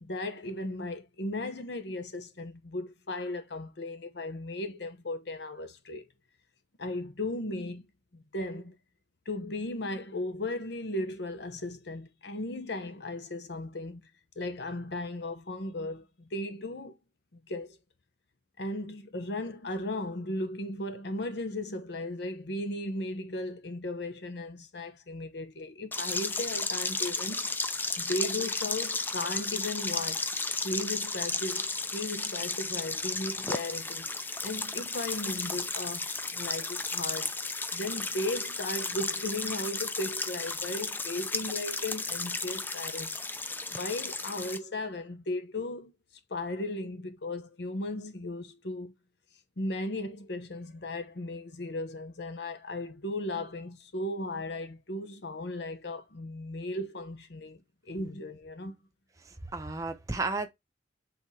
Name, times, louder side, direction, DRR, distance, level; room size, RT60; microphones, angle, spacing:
voice 1, 0.0-6.1 6.8-7.8 8.1-8.8 9.3-14.0 14.4-17.0 17.5-17.8 18.6-27.5 28.0-30.3 30.6-34.1 34.4-37.3 37.7-43.1 43.7-45.9 46.3-48.9 49.6-57.6 57.9-58.8, left 2 dB, 60° left, 0.8 m, -36 dB
sound 1, 25.9-44.6, left 3 dB, 10° left, 0.5 m, -34 dB
voice 2, 59.2-60.5, right 3 dB, 15° right, 0.8 m, -33 dB
7.9 x 4.2 x 3.1 m
head